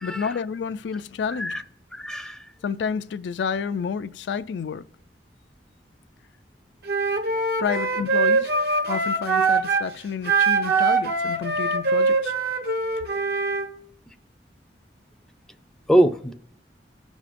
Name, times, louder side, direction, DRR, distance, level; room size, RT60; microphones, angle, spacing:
voice 1, 0.0-1.6 2.6-4.8 7.6-8.5 8.9-12.3, left 6 dB, 75° left, 0.3 m, -30 dB
voice 2, 1.9-2.4 15.9-16.3, right 1 dB, 5° left, 0.4 m, -22 dB
Wind instrument woodwind instrument, 6.9-9.9 10.2-13.7, right 4 dB, 65° right, 0.8 m, -23 dB
18.0 x 6.2 x 2.5 m
head